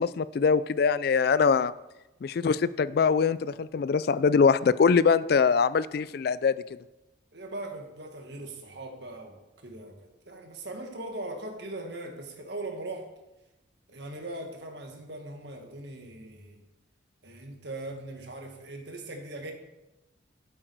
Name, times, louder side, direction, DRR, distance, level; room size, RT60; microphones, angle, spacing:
voice 1, 0.0-1.7 2.2-6.6, left 5 dB, 50° left, 17 dB, 0.3 m, -23 dB
voice 2, 7.3-10.0 10.3-13.1 13.9-16.6 17.2-19.5, right 2 dB, 60° right, 3 dB, 1.7 m, -40 dB
12.0 x 7.8 x 4.7 m, 0.99 s
head